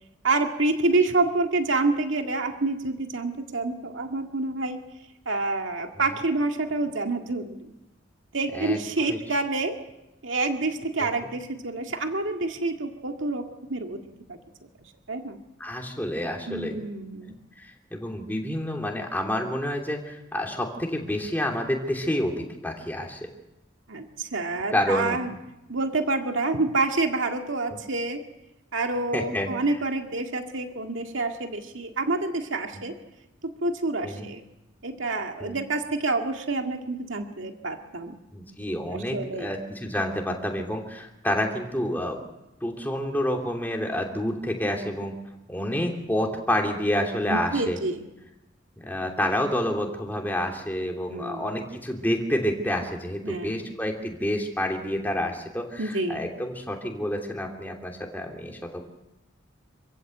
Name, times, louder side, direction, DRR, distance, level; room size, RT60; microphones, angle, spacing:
voice 1, 0.2-4.8 5.3-7.6 8.3-9.8 10.2-14.0 14.3-14.4 15.1-15.4 16.5-17.4 23.9-25.4 25.7-28.2 28.7-32.9 33.6-34.4 34.8-38.2 38.9-39.5 47.2-48.0 51.1-51.6 53.2-53.7 55.8-56.3, right 3 dB, 80° right, 4 dB, 2.0 m, -28 dB
voice 2, 8.5-9.2 11.0-11.1 15.6-16.8 17.6-23.3 24.7-25.2 29.1-29.5 32.7-32.8 34.0-34.3 35.4-35.6 38.3-42.2 42.6-45.2 45.5-47.8 48.8-58.8, left 1 dB, 10° left, 1 dB, 2.9 m, -29 dB
27.0 x 16.0 x 8.0 m, 0.95 s
head